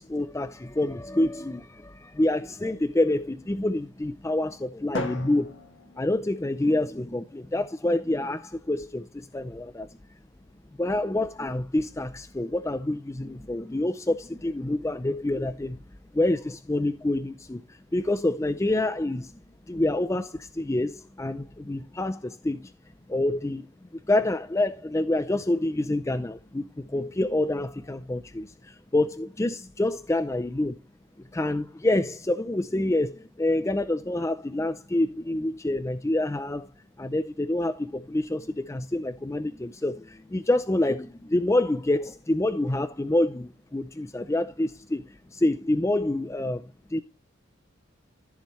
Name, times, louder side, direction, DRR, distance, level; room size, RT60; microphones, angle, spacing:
voice 1, 0.0-5.5 6.0-9.9 10.8-15.8 16.1-17.6 17.9-19.3 19.7-22.6 23.1-23.6 24.1-30.7 31.3-36.7 37.0-45.0 45.3-46.6 46.9-47.0, left 1 dB, 15° left, 0.4 m, -27 dB
Drum, 4.9-6.9, left 2 dB, 65° left, 1.6 m, -37 dB
14.0 x 7.2 x 3.2 m
head